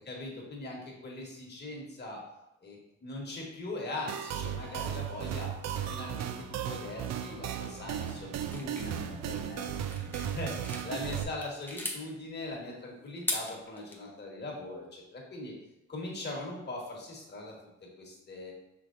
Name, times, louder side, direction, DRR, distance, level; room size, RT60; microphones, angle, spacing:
voice 1, 0.0-2.2 2.6-5.6 5.9-9.7 9.9-15.5 15.9-17.5 17.8-18.5, left 2 dB, 35° left, -2 dB, 1.4 m, -41 dB
sound 1, 4.1-11.2, right 9 dB, 60° right, 0.4 m, -36 dB
sound 2, 8.5-10.9 11.3-12.0 13.1-14.0, left 2 dB, 5° left, 0.7 m, -38 dB
5.8 x 3.2 x 2.5 m, 0.91 s
cardioid pair, 90°, 30 cm